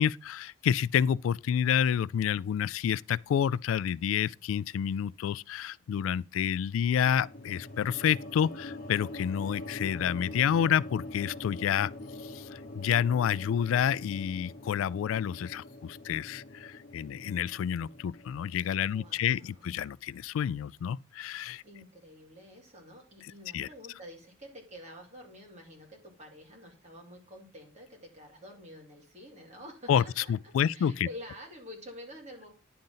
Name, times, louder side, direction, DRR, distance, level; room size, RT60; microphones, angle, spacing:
voice 1, 0.0-11.9 12.2-21.6 23.5-23.7 29.9-31.1, left 8 dB, 90° left, 0.3 m, -29 dB
sound 1, 7.1-19.3, left 2 dB, 45° left, 1.2 m, -44 dB
voice 2, 18.8-19.7 21.6-32.5, equal, 35° right, 2.8 m, -48 dB
10.5 x 3.9 x 5.5 m
head